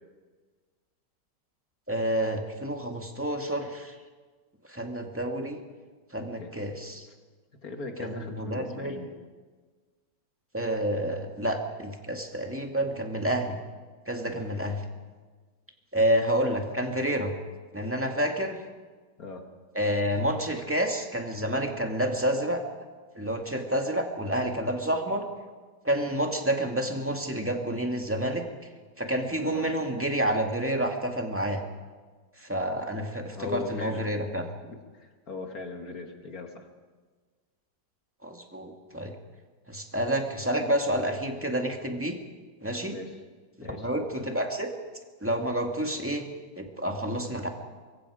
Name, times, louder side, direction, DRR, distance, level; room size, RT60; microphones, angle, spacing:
voice 1, 1.9-4.0 4.7-5.6 6.1-7.1 8.0-9.0 10.5-13.6 14.1-14.8 15.9-17.3 17.7-18.6 19.7-22.6 23.2-25.2 25.8-28.5 29.0-31.6 32.4-34.4 38.2-39.2 39.7-42.2 42.6-43.0 43.6-44.7 45.2-46.2 46.6-47.5, right 1 dB, 5° right, 2 dB, 2.1 m, -29 dB
voice 2, 7.6-9.2 14.3-14.4 19.2-19.5 29.4-29.7 33.3-34.0 34.6-36.7 42.9-43.2 43.6-43.9, left 4 dB, 55° left, 4 dB, 2.4 m, -39 dB
25.0 x 23.0 x 5.0 m, 1.4 s
omnidirectional pair, 1.9 m